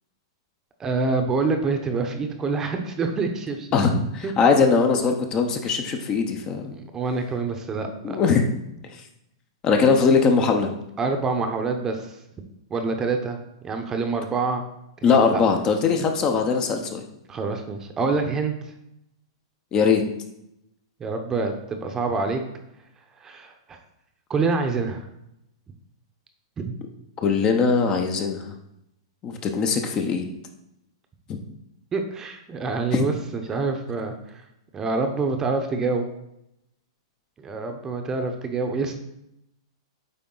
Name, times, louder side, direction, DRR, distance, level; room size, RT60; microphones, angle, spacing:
voice 1, 0.8-3.7 4.2-4.3 5.6-5.7 6.7-8.2 11.0-12.2 12.7-13.4 13.6-14.6 15.0-15.4 17.3-18.5 21.0-22.4 23.2-23.8 24.3-25.1 26.6-26.7 31.9-34.1 34.7-36.0 37.4-38.9, right 4 dB, 20° right, 5 dB, 0.8 m, -26 dB
voice 2, 3.7-6.8 8.0-8.5 9.6-10.7 15.0-17.0 19.7-20.0 27.2-28.5 29.2-30.2 31.3-31.4 32.9-33.0, left 5 dB, 30° left, 5 dB, 0.7 m, -21 dB
8.7 x 3.4 x 3.8 m, 0.82 s
hypercardioid pair, 135°, 3 cm